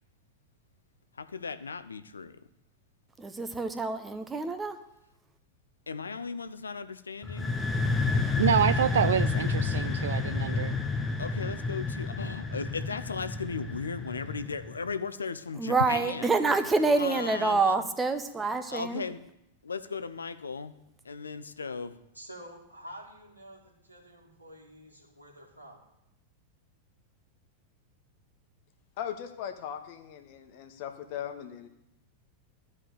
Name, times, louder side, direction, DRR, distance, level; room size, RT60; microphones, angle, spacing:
voice 1, 1.2-2.4 5.9-7.5 11.2-16.6 17.0-17.8 18.7-19.2 19.6-20.7 21.0-22.0, left 5 dB, 75° left, 11 dB, 0.6 m, -36 dB
voice 2, 3.2-4.8 15.6-19.0, right 3 dB, 15° right, 8 dB, 1.1 m, -27 dB
sound 1, 7.2-14.9, left 3 dB, 10° left, 1.0 m, -30 dB
voice 3, 8.4-10.7, right 8 dB, 65° right, 12 dB, 0.3 m, -27 dB
voice 4, 22.1-25.8, equal, 85° right, -2 dB, 2.5 m, -48 dB
voice 5, 29.0-31.7, left 9 dB, 50° left, 6 dB, 1.4 m, -39 dB
12.0 x 5.0 x 8.3 m, 0.84 s
figure-of-eight pair, 90°, 0 cm